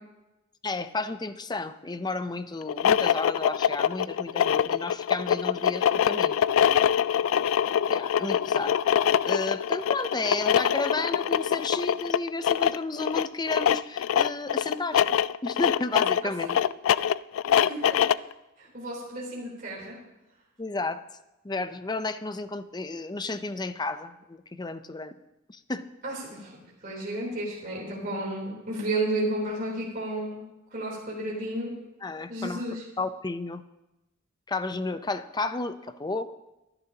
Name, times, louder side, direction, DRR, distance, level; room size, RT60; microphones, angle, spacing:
voice 1, 0.6-6.4 6.6-6.8 7.9-8.8 9.2-16.6 20.6-21.0 21.4-25.1 25.5-25.8 32.0-32.7 33.0-33.6 34.5-36.4, left 3 dB, 20° left, 11 dB, 0.6 m, -32 dB
sound 1, 2.6-18.3, left 9 dB, 80° left, 0.3 m, -24 dB
voice 2, 17.5-18.0 18.6-20.0 26.0-26.6 26.8-30.4 30.7-31.7 32.3-32.8, right 1 dB, 45° right, -4 dB, 3.7 m, -32 dB
24.0 x 11.0 x 2.9 m, 0.97 s
head